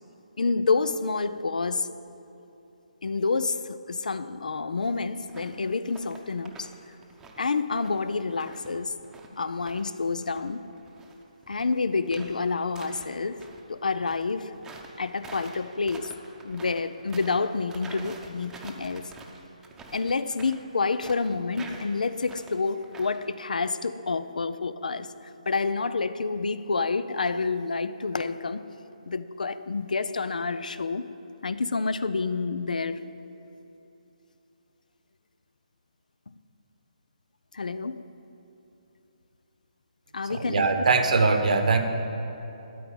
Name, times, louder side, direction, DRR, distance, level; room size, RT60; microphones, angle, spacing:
voice 1, 0.4-1.9 3.0-6.7 7.4-9.0 9.3-10.6 11.5-14.6 15.0-16.1 16.4-19.1 19.9-25.1 25.5-28.6 29.1-31.1 31.4-33.1 36.3-36.4 37.5-38.0 40.1-40.7, left 4 dB, 85° left, 0.5 m, -28 dB
sound 1, 5.2-5.5 5.8-6.8 7.0-9.9 10.2-13.6 14.0-23.3, right 3 dB, 10° right, 0.7 m, -47 dB
voice 2, 40.3-41.8, right 4 dB, 65° right, 1.2 m, -22 dB
12.5 x 4.7 x 8.7 m
hypercardioid pair, 155°, 4 cm